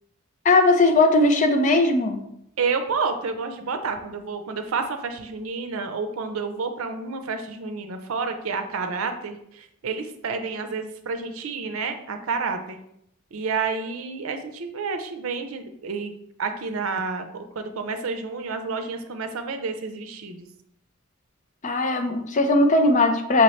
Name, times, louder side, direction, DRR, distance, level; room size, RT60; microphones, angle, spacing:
voice 1, 0.4-2.2 21.6-23.4, left 2 dB, 35° left, 6 dB, 0.5 m, -19 dB
voice 2, 2.6-12.8 13.3-16.1 16.4-20.5, right 4 dB, 80° right, 7 dB, 0.5 m, -29 dB
5.7 x 2.9 x 3.1 m, 0.75 s
head